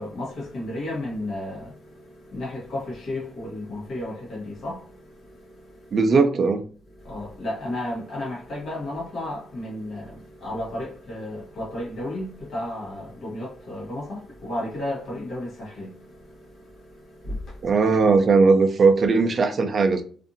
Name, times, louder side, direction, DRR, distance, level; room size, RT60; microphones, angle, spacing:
voice 1, 0.0-6.0 6.9-17.8, left 1 dB, 50° left, 1.2 m, -33 dB
voice 2, 5.9-6.6 17.6-20.0, right 4 dB, 35° right, 0.4 m, -18 dB
2.6 x 2.5 x 2.6 m
cardioid pair, 175°, 0 cm